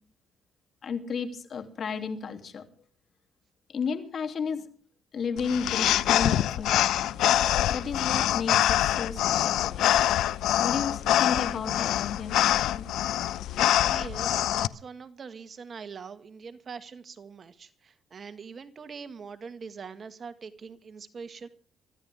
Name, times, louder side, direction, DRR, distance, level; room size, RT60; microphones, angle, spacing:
voice 1, 0.8-2.6 3.7-4.7 5.1-7.2 7.7-9.9 10.6-12.9, left 5 dB, 55° left, 7 dB, 2.9 m, -33 dB
sound 1, 5.4-14.7, left 12 dB, 85° left, 0.6 m, -25 dB
voice 2, 13.8-21.5, right 5 dB, 45° right, 11 dB, 1.8 m, -43 dB
25.0 x 14.5 x 3.6 m, 0.43 s
cardioid pair, 90°, 0 cm